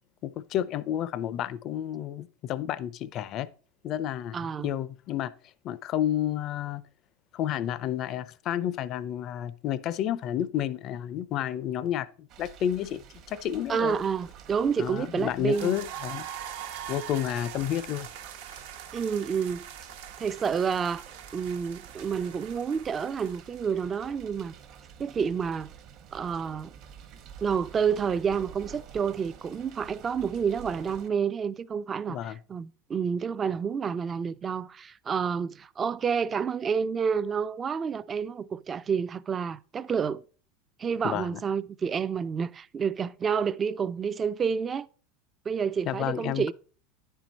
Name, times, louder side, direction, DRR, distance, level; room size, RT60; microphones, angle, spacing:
voice 1, 0.2-3.5 3.8-4.4 4.6-5.3 5.6-6.8 7.3-13.0 13.3-14.0 14.8-16.3 16.9-18.1 18.5-18.6 32.1-32.4 41.0-41.4 45.9-46.5, left 11 dB, 45° left, 0.4 m, -30 dB
voice 2, 4.3-4.7 13.7-15.8 18.9-19.7 20.2-21.0 21.3-24.5 25.0-25.7 26.1-26.7 27.4-40.2 40.8-44.9 45.5-46.5, right 6 dB, 25° right, 0.3 m, -29 dB
sound 1, 12.3-31.1, right 8 dB, 50° right, 1.0 m, -49 dB
sound 2, 15.5-23.6, right 9 dB, 80° right, 0.9 m, -42 dB
9.9 x 4.5 x 4.1 m
supercardioid pair, 120°, 0 cm